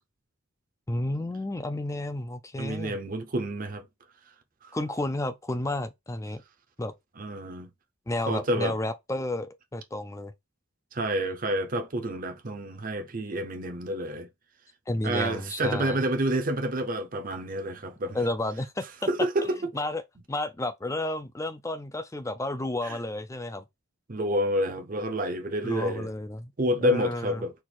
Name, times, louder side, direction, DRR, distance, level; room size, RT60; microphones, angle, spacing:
voice 1, 0.9-3.0 4.7-6.4 6.8-6.9 8.1-10.3 14.9-16.0 18.1-18.9 19.7-20.0 20.3-23.6 25.6-26.5 26.8-27.5, left 1 dB, 15° left, 0.4 m, -31 dB
voice 2, 2.6-3.8 4.6-4.8 7.2-7.7 8.3-8.8 10.9-14.3 15.0-18.2 19.1-19.6 22.8-23.0 24.1-26.1 26.6-27.5, right 1 dB, 40° right, 0.7 m, -29 dB
4.4 x 2.5 x 4.2 m
head